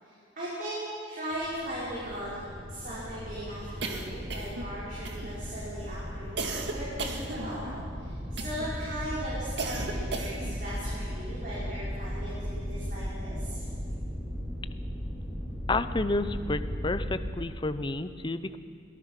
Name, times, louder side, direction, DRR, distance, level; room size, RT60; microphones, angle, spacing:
voice 1, 0.0-2.4 2.7-13.6, right 1 dB, 50° right, -9 dB, 5.5 m, -38 dB
sound 1, 1.3-17.2, equal, 5° right, 4.3 m, -37 dB
sound 2, 3.8-4.7 5.0-5.6 6.4-7.8 8.4-8.8 9.6-10.6, right 3 dB, 65° right, 1.9 m, -35 dB
voice 2, 15.7-18.6, left 2 dB, 25° left, 12 dB, 0.7 m, -30 dB
23.5 x 18.5 x 5.9 m, 2.3 s
head